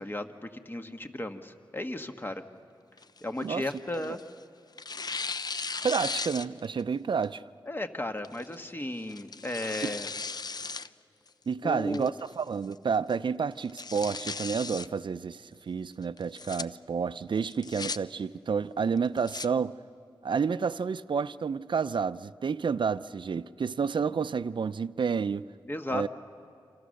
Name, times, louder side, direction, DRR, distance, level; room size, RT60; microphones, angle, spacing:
voice 1, 0.0-2.4 3.2-4.2 7.6-10.1 11.6-12.2 25.7-26.1, left 1 dB, 25° left, 1.4 m, -35 dB
Tearing, 3.0-4.3 4.8-6.8 7.2-7.3 8.2-8.5 9.1-10.9 11.3-11.4 11.9-12.3 12.7-12.8 13.1-13.2 13.6-14.9 16.2-16.6 17.4-18.0 19.0-19.5, left 4 dB, 50° left, 0.6 m, -36 dB
voice 2, 5.8-7.4 9.8-9.9 11.5-19.7 20.2-25.5 25.9-26.1, right 6 dB, 65° right, 0.5 m, -30 dB
27.5 x 27.5 x 6.5 m
cardioid pair, 65°, 9 cm